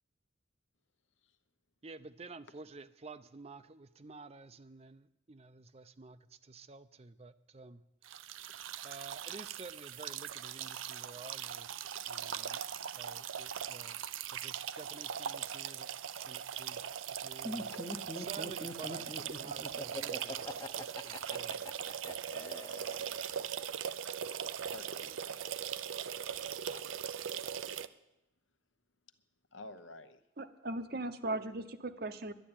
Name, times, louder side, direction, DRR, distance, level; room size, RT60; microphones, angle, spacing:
voice 1, 1.8-7.8 8.1-8.5 8.8-15.9 16.2-17.8 18.2-21.7, right 3 dB, 30° right, 13 dB, 0.5 m, -51 dB
sound 1, 8.0-27.9, right 8 dB, 85° right, 0.6 m, -40 dB
Laughter, 17.4-23.4, left 1 dB, 20° left, 0.7 m, -43 dB
voice 2, 24.7-25.7 26.4-27.2 29.5-30.2, left 2 dB, 75° left, 10 dB, 1.0 m, -52 dB
voice 3, 30.4-32.3, right 2 dB, 50° right, 10 dB, 0.9 m, -38 dB
11.0 x 11.0 x 8.8 m, 0.90 s
head